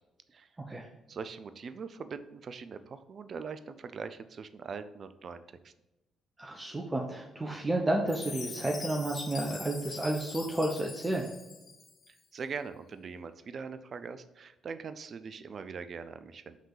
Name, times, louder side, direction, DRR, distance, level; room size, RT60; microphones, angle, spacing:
voice 1, 1.1-5.7 12.1-16.6, right 5 dB, 50° right, 12 dB, 0.5 m, -42 dB
voice 2, 6.4-11.3, right 1 dB, 25° right, 0 dB, 0.9 m, -31 dB
Chime, 8.1-12.1, left 5 dB, 45° left, 0.7 m, -44 dB
5.5 x 3.6 x 4.8 m, 1.0 s
hypercardioid pair, 45°, 0 cm